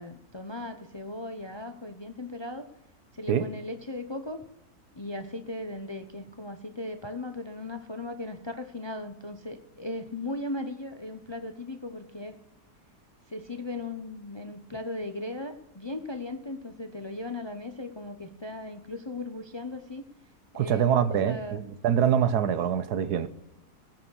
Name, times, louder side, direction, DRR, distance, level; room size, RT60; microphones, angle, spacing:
voice 1, 0.0-2.7 3.1-4.4 4.9-12.3 13.3-20.0 20.5-21.7, left 2 dB, 25° left, 0.6 m, -37 dB
voice 2, 20.5-23.3, right 8 dB, 80° right, 1.4 m, -25 dB
18.0 x 6.2 x 6.3 m
omnidirectional pair, 1.7 m